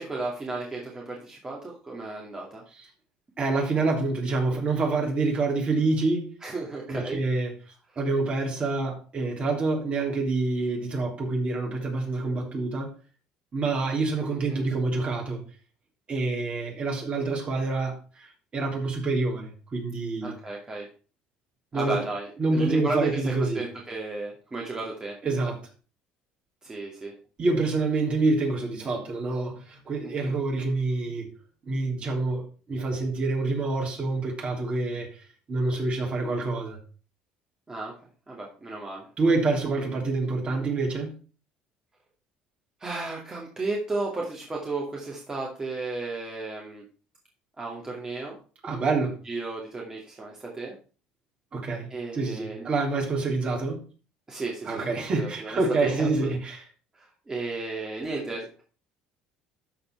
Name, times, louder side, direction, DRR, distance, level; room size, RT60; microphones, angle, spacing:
voice 1, 0.0-2.6 6.4-7.2 14.5-14.6 20.2-20.9 21.7-25.1 26.6-27.1 30.0-30.3 37.7-37.9 38.3-39.1 42.8-46.8 47.6-48.4 49.3-50.7 51.9-52.7 54.3-56.3 56.9-58.6, right 3 dB, 20° right, 2.3 m, -34 dB
voice 2, 3.4-6.3 6.9-7.5 8.0-12.9 13.5-15.4 16.1-20.3 21.7-22.0 22.4-23.6 25.2-25.6 27.4-31.3 31.6-35.1 35.5-36.8 39.2-41.2 48.6-49.2 51.5-53.8 54.6-56.7, right 3 dB, 35° right, 3.2 m, -27 dB
13.0 x 4.4 x 4.5 m
supercardioid pair, 95°, 3 cm